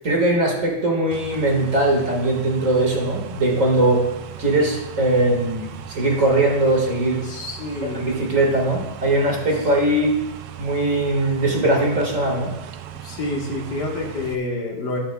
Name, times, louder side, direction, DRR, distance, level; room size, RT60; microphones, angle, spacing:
voice 1, 0.0-4.0 4.4-7.2 7.9-10.1 10.6-12.5, right 1 dB, 45° right, -1 dB, 2.2 m, -20 dB
sound 1, 1.1-14.3, right 10 dB, 75° right, 1.2 m, -38 dB
voice 2, 7.2-8.4 13.0-15.0, left 2 dB, 65° left, -1 dB, 2.1 m, -28 dB
12.0 x 12.0 x 2.3 m, 0.94 s
omnidirectional pair, 1.9 m